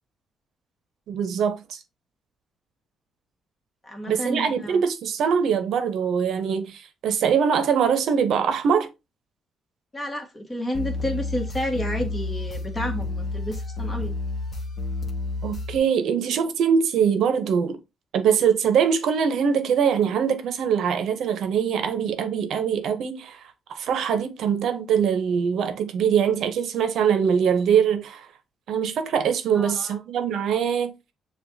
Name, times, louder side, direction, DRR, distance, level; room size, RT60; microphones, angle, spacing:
voice 1, 1.1-1.8 4.1-8.9 15.4-17.8 18.1-23.4 23.7-28.3 28.7-31.0, right 7 dB, 75° right, 0.8 m, -23 dB
voice 2, 3.8-4.8 9.9-14.1 29.5-30.0, equal, 20° left, 1.5 m, -30 dB
sound 1, 10.7-15.8, left 2 dB, 40° left, 0.9 m, -30 dB
6.9 x 2.4 x 2.7 m
cardioid pair, 90°, 0 cm